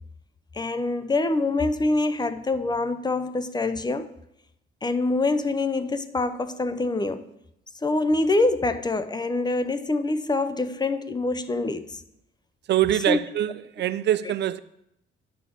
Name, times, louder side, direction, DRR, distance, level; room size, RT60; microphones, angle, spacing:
voice 1, 0.6-4.1 4.8-7.3 7.8-11.9 13.1-13.2, left 2 dB, 20° left, 0.7 m, -25 dB
voice 2, 12.7-14.6, right 12 dB, 60° right, 0.4 m, -24 dB
11.0 x 4.3 x 6.9 m
cardioid pair, 90°, 20 cm